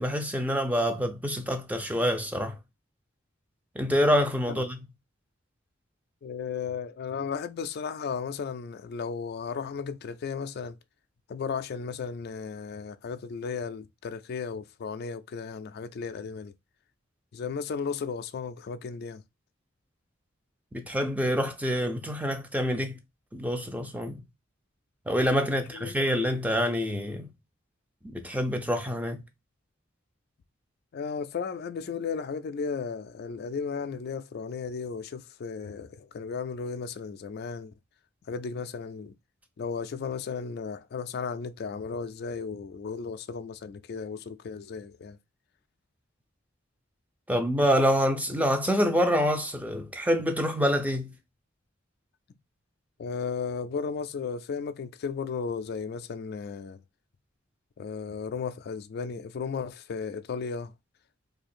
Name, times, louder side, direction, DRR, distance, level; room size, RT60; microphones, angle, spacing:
voice 1, 0.0-2.6 3.8-4.8 20.7-23.0 23.3-24.2 25.1-27.3 28.0-29.2 47.3-51.1, equal, 5° right, 0.5 m, -26 dB
voice 2, 6.2-10.8 11.3-16.5 17.3-19.2 25.5-25.9 30.9-37.7 38.3-39.1 39.6-45.2 53.0-56.8 57.8-60.7, left 5 dB, 50° left, 0.3 m, -35 dB
2.7 x 2.4 x 4.2 m
head